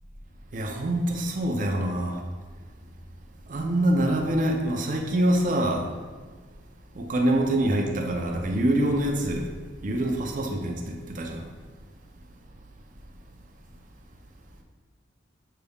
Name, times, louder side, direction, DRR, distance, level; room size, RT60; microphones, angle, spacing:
voice 1, 0.5-2.2 3.5-5.8 7.0-9.5 9.8-11.5, right 1 dB, 45° right, 2 dB, 0.5 m, -25 dB
6.6 x 3.5 x 2.3 m, 1.4 s
head